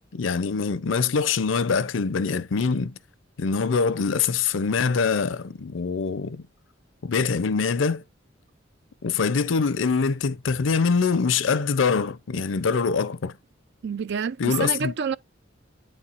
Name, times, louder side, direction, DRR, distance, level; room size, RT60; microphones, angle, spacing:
voice 1, 0.1-3.0 3.4-6.4 7.0-8.0 9.0-13.4 14.4-15.2, left 5 dB, 75° left, 0.5 m, -24 dB
voice 2, 13.8-15.2, right 6 dB, 60° right, 0.4 m, -28 dB
9.0 x 4.3 x 2.5 m
head